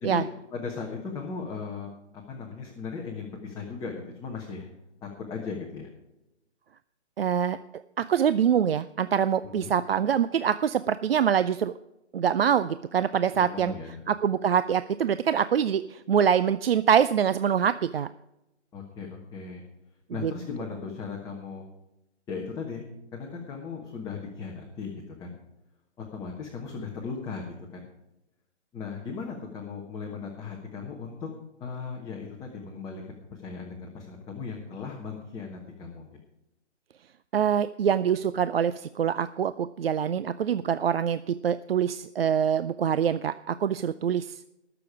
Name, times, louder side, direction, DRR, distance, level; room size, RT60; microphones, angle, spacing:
voice 1, 0.5-1.9 2.3-4.7 5.0-5.9 9.5-9.7 13.3-14.0 18.7-19.6 20.1-21.6 22.3-22.8 23.1-25.4 26.0-27.4 27.7-27.9 28.7-31.3 31.6-36.1, left 5 dB, 10° left, -1 dB, 1.3 m, -37 dB
voice 2, 7.2-7.6 8.0-11.7 12.1-13.7 14.1-18.1 20.2-20.3 37.3-44.4, right 8 dB, 55° right, 13 dB, 0.5 m, -25 dB
19.5 x 7.0 x 4.8 m, 0.91 s
figure-of-eight pair, 135°, 35 cm